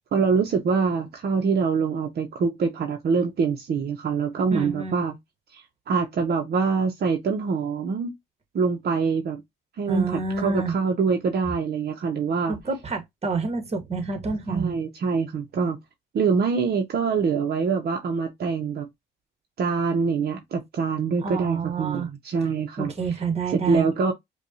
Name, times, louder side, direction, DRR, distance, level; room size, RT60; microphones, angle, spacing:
voice 1, 0.1-5.1 5.5-8.1 8.5-9.4 9.8-12.6 14.5-15.8 16.1-18.9 19.6-22.9 23.5-24.1, right 5 dB, 55° right, 0.8 m, -24 dB
voice 2, 4.5-5.0 9.9-10.7 12.5-14.8 21.2-22.1 22.8-23.9, right 4 dB, 30° right, 1.4 m, -28 dB
5.2 x 2.3 x 2.7 m
cardioid pair, 90°, 20 cm